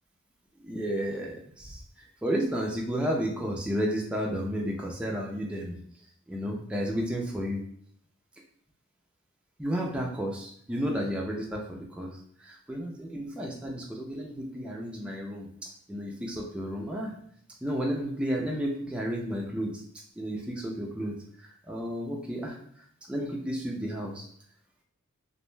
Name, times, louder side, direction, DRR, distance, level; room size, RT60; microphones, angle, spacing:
voice 1, 0.6-5.8 6.3-7.6 9.6-12.1 12.4-17.1 17.6-19.8 20.2-22.6 23.1-24.3, equal, 5° right, -1 dB, 0.3 m, -32 dB
2.6 x 2.1 x 3.1 m, 0.63 s
head